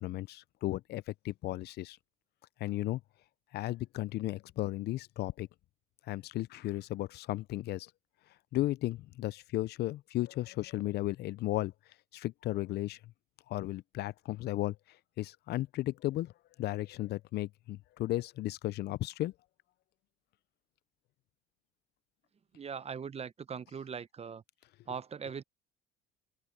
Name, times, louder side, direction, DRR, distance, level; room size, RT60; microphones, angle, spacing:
voice 1, 0.0-2.0 2.6-3.0 3.5-5.5 6.1-7.9 8.5-11.7 12.1-13.0 13.5-14.8 15.2-16.3 16.6-19.3, left 16 dB, 55° left, 0.9 m, -35 dB
voice 2, 22.5-24.4 24.9-25.4, right 6 dB, 30° right, 1.1 m, -40 dB
open air
hypercardioid pair, 65°, 20 cm